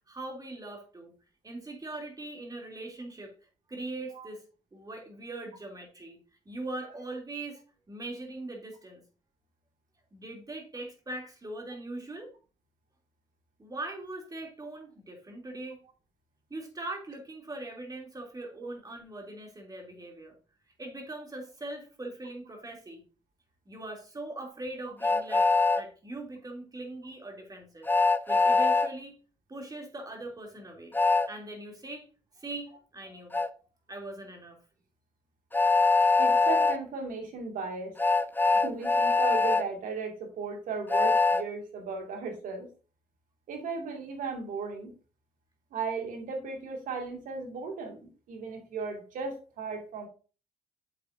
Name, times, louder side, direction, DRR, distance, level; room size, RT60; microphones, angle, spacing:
voice 1, 0.1-1.1 1.4-3.3 3.7-4.4 4.7-6.2 6.4-7.6 7.9-9.0 10.1-12.3 13.6-15.8 16.5-20.4 20.8-23.0 23.7-25.5 25.7-27.9 28.3-29.2 29.5-31.0 31.3-32.1 32.4-33.3 33.9-34.6, right 2 dB, 25° right, 1 dB, 3.2 m, -41 dB
Train, 25.0-25.8 27.9-28.9 30.9-31.3 33.3-33.5 35.5-36.8 38.0-39.6 40.9-41.4, left 3 dB, 10° left, 0.6 m, -23 dB
voice 2, 36.2-38.0 38.6-42.7 43.5-44.9 45.7-50.1, right 4 dB, 60° right, 3 dB, 2.4 m, -36 dB
8.5 x 7.5 x 2.7 m, 0.35 s
hypercardioid pair, 50°, 15 cm